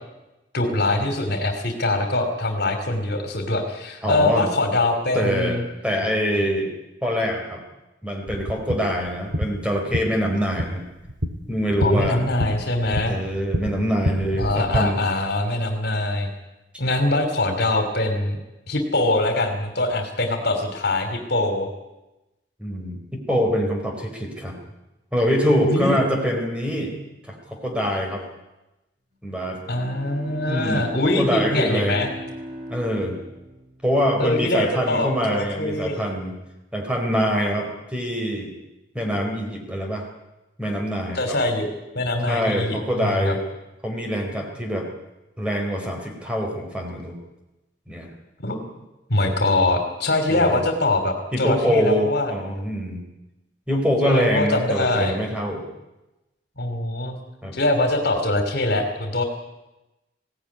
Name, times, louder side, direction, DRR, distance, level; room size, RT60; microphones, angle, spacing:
voice 1, 0.5-5.6 11.8-13.2 14.4-16.3 16.8-18.4 18.7-21.7 25.6-26.0 29.7-32.1 34.2-36.1 41.1-43.4 48.4-48.7 49.1-52.3 54.0-55.2 56.6-57.1 57.5-59.2, left 2 dB, 60° left, 7 dB, 3.0 m, -23 dB
voice 2, 4.0-4.5 5.1-6.7 7.0-7.6 8.0-10.8 11.5-12.2 13.0-15.0 22.6-24.6 25.1-26.9 27.2-28.2 29.2-29.6 30.3-32.0 32.7-33.2 33.8-36.3 36.7-38.5 38.9-40.1 40.6-41.4 42.3-43.4 43.8-44.9 45.4-47.2 47.9-48.1 50.3-50.6 51.3-53.0 53.7-55.7 57.4-57.5, equal, 5° right, 2 dB, 4.1 m, -24 dB
sound 1, 8.3-14.8, equal, 80° right, 2.1 m, -29 dB
Bowed string instrument, 29.4-34.4, equal, 40° right, 6.8 m, -37 dB
21.0 x 17.0 x 9.8 m, 1.0 s
head